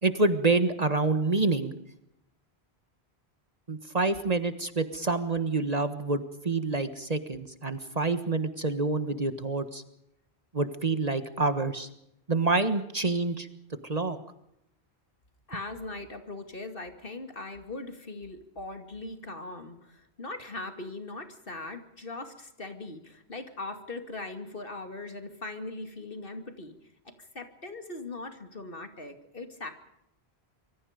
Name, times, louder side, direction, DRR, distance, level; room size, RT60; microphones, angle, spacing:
voice 1, 0.0-1.7 3.7-9.8 10.5-11.9 12.3-13.5 13.8-14.2, right 3 dB, 40° right, 10 dB, 1.5 m, -27 dB
voice 2, 15.5-26.7 27.0-29.7, left 2 dB, 60° left, 7 dB, 2.7 m, -40 dB
25.5 x 24.0 x 5.2 m, 0.80 s
omnidirectional pair, 1.1 m